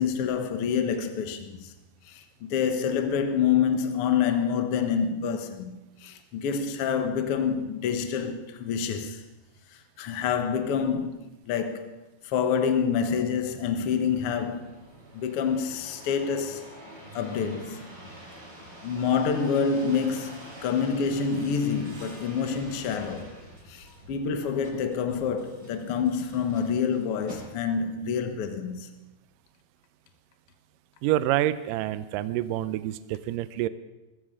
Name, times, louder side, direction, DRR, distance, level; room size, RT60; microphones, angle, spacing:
voice 1, 0.0-1.7 2.1-9.2 10.0-12.0 12.2-14.7 15.1-16.7 17.1-17.9 18.8-23.4 23.7-28.9, left 6 dB, 75° left, 1.3 m, -27 dB
sound 1, 13.4-27.9 28.5-29.0, right 1 dB, 35° right, 6.6 m, -47 dB
voice 2, 31.0-33.7, right 13 dB, 80° right, 2.0 m, -27 dB
21.0 x 15.5 x 3.8 m
omnidirectional pair, 4.4 m